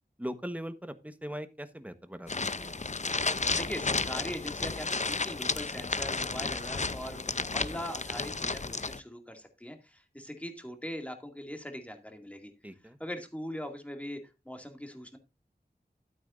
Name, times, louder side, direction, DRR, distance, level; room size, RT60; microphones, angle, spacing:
voice 1, 0.2-2.7 12.6-13.0, equal, 10° right, 10 dB, 1.2 m, -40 dB
sound 1, 2.3-9.0, left 3 dB, 45° left, 0.6 m, -32 dB
voice 2, 3.6-12.5 13.0-14.2 14.5-15.2, equal, 10° left, 5 dB, 2.3 m, -41 dB
12.0 x 9.3 x 2.6 m, 0.27 s
wide cardioid pair, 55°, 17 cm